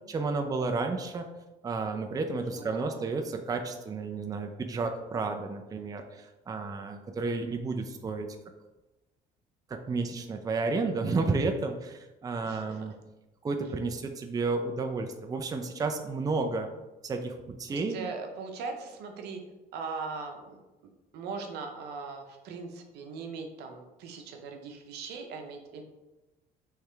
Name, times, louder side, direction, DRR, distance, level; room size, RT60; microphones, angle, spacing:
voice 1, 0.1-1.3 1.6-8.4 9.7-12.9 13.4-16.7 17.0-18.1, right 3 dB, 20° right, 4 dB, 0.4 m, -32 dB
voice 2, 2.6-3.1 12.4-12.9 17.7-19.4 19.7-20.6 21.1-25.8, right 4 dB, 80° right, 4 dB, 0.7 m, -40 dB
4.8 x 3.2 x 3.4 m, 1.1 s
cardioid pair, 110°, 17 cm